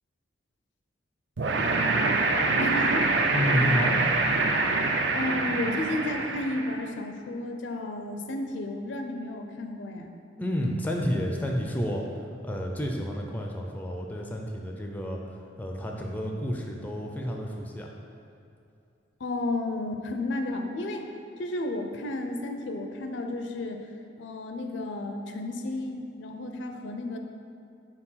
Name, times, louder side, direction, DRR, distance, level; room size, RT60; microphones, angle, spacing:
sound 1, 1.4-6.8, right 3 dB, 60° right, 0.5 m, -25 dB
voice 1, 2.6-3.1 5.1-10.1 19.2-21.1 21.4-23.9 24.2-27.2, left 2 dB, 70° left, 5 dB, 0.5 m, -32 dB
voice 2, 3.3-4.0 10.4-12.1 12.4-17.9, equal, 10° left, 1 dB, 0.4 m, -30 dB
4.5 x 4.4 x 5.6 m, 2.6 s
head